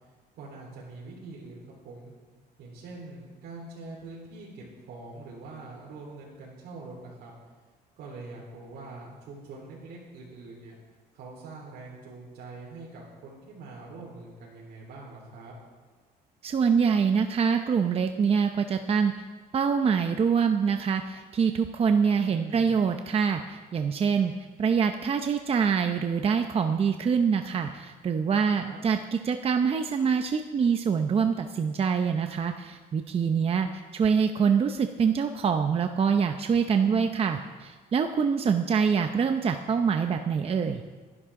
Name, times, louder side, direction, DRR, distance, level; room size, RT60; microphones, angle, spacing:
voice 1, 0.3-2.1 2.6-7.3 8.0-10.8 11.1-15.5 22.1-22.8 28.5-28.8 36.8-37.0, right 3 dB, 80° right, -6 dB, 4.1 m, -44 dB
voice 2, 16.4-19.1 19.5-24.3 24.6-40.8, right 6 dB, 35° right, 6 dB, 0.8 m, -25 dB
25.5 x 11.0 x 3.8 m, 1.4 s
cardioid pair, 110°, 17 cm